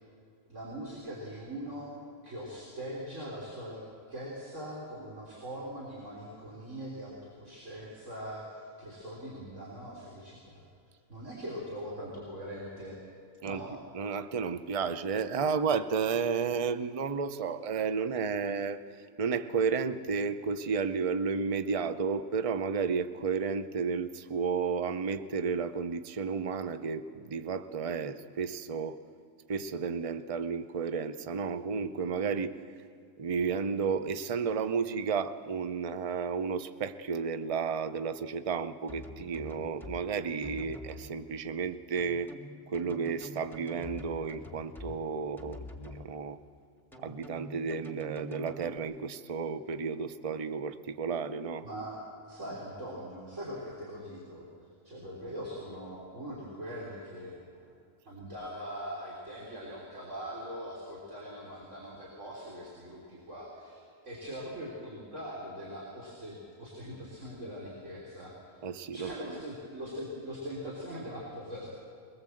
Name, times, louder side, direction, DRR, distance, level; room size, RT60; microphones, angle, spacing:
voice 1, 0.5-1.9 2.2-10.6 11.1-13.0 13.4-13.7 51.6-54.5 54.8-57.7 58.1-68.6 68.9-71.7, equal, 65° right, -5 dB, 3.9 m, -42 dB
voice 2, 13.9-18.8 19.2-29.0 29.5-32.5 33.2-42.3 42.7-46.4 47.0-51.7 68.6-69.4, right 5 dB, 35° right, 11 dB, 0.6 m, -32 dB
sound 1, 38.9-40.0 40.4-41.1 42.0-45.0 45.4-46.0 46.9-48.8, left 1 dB, ahead, 1.8 m, -45 dB
22.5 x 20.0 x 7.8 m, 2.3 s
omnidirectional pair, 1.4 m